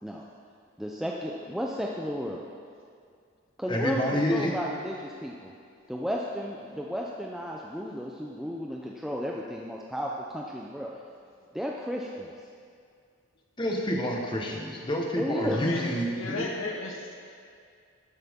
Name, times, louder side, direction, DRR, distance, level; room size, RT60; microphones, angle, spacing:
voice 1, 0.8-2.4 3.6-4.0 4.3-5.5 5.9-10.9 11.5-12.3 15.2-15.6, equal, ahead, -3 dB, 0.5 m, -33 dB
voice 2, 3.7-4.5 13.6-16.4, equal, 20° left, 0 dB, 1.2 m, -28 dB
voice 3, 15.5-15.9 16.1-17.1, left 2 dB, 65° left, 0 dB, 1.1 m, -34 dB
12.5 x 9.8 x 3.7 m, 2.3 s
head